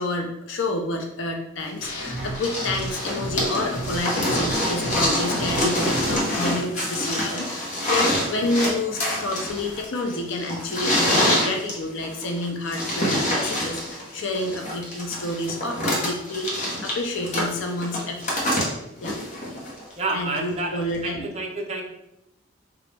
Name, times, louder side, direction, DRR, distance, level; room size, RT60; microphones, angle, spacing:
voice 1, 0.0-18.3 18.6-18.7 19.0-19.2 20.1-21.3, left 2 dB, 65° left, 2 dB, 0.5 m, -29 dB
sound 1, 1.8-6.2, right 1 dB, 85° left, 1.2 m, -33 dB
sound 2, 1.8-19.9 20.9-21.0, left 1 dB, 35° left, 0.9 m, -26 dB
voice 2, 20.0-21.8, right 2 dB, 30° right, -1 dB, 0.6 m, -29 dB
3.9 x 2.3 x 3.3 m, 0.85 s
head